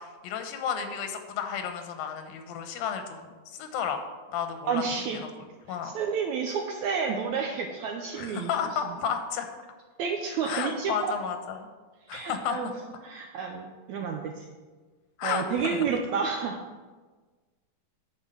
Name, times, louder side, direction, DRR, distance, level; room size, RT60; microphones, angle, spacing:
voice 1, 0.0-4.0 4.3-4.8 5.1-5.3 5.7-5.9 8.1-9.5 10.4-11.7 12.1-12.7 15.2-15.9, left 7 dB, 85° left, 6 dB, 2.8 m, -32 dB
voice 2, 4.7-5.2 5.8-8.5 10.0-11.1 12.1-12.7 13.0-14.5 15.2-16.6, right 6 dB, 80° right, 3 dB, 1.7 m, -30 dB
9.8 x 4.8 x 7.7 m, 1.4 s
omnidirectional pair, 4.0 m